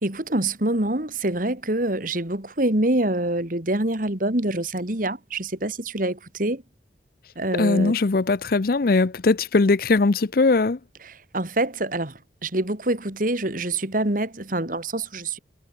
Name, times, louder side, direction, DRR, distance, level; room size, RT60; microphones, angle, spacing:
voice 1, 0.0-6.6 7.4-7.9 11.3-12.1 12.4-15.4, right 1 dB, 50° right, 2.8 m, -25 dB
voice 2, 7.5-10.8, left 3 dB, 55° left, 0.6 m, -20 dB
head